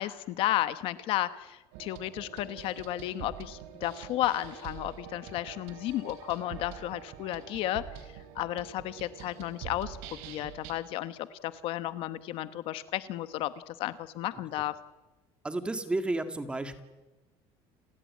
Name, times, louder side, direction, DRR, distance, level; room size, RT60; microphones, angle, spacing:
voice 1, 0.0-7.8 8.3-14.8, left 14 dB, 50° left, 13 dB, 1.1 m, -33 dB
sound 1, 1.7-10.7, right 10 dB, 75° right, 4.0 m, -45 dB
voice 2, 15.4-16.8, right 2 dB, 10° right, 8 dB, 2.0 m, -32 dB
29.5 x 18.5 x 9.6 m, 1.1 s
cardioid pair, 170°, 12 cm